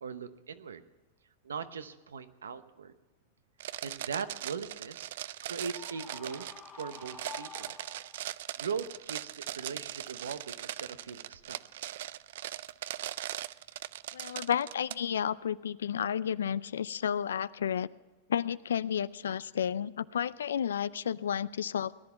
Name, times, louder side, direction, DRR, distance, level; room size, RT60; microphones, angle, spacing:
voice 1, 0.0-0.8 1.4-2.9 3.8-5.1 5.4-6.5 6.7-7.8 8.6-11.6, right 6 dB, 90° right, 11 dB, 0.9 m, -40 dB
sound 1, 3.6-14.9, right 13 dB, 70° right, 0.4 m, -40 dB
Screaming, 5.7-8.4, left 5 dB, 20° left, 1.0 m, -49 dB
voice 2, 14.1-17.9 18.3-22.0, left 8 dB, 85° left, 19 dB, 0.4 m, -32 dB
18.5 x 10.5 x 5.7 m, 1.2 s
hypercardioid pair, 110°, 0 cm